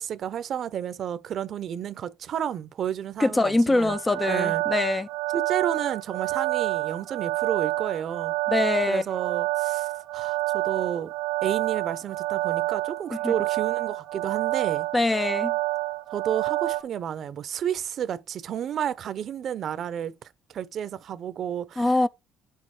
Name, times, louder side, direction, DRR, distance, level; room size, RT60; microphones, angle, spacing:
voice 1, 0.0-4.0 4.3-4.6 5.3-8.3 8.9-11.1 11.4-14.9 16.1-21.9, right 9 dB, 50° right, 0.7 m, -31 dB
voice 2, 3.2-5.1 8.5-9.0 13.2-13.3 14.9-15.6 21.8-22.1, left 2 dB, 15° left, 0.5 m, -23 dB
sound 1, 3.9-16.8, right 19 dB, 85° right, 1.1 m, -28 dB
8.2 x 6.5 x 4.9 m
cardioid pair, 115°, 0 cm